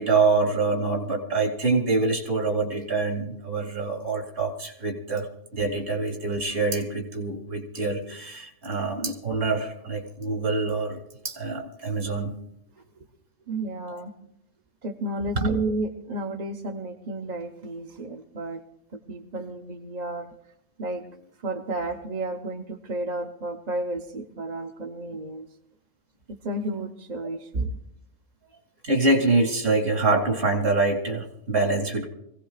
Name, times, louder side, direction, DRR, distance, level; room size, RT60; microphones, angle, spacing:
voice 1, 0.0-5.3 5.5-12.3 15.4-15.5 27.6-27.7 28.8-32.1, right 3 dB, 55° right, 3 dB, 2.7 m, -25 dB
voice 2, 13.5-14.1 14.8-18.6 18.9-20.3 20.8-21.0 21.4-25.5 26.3-27.8, right 2 dB, 35° right, 1 dB, 1.0 m, -32 dB
25.5 x 17.0 x 2.4 m, 0.77 s
omnidirectional pair, 1.3 m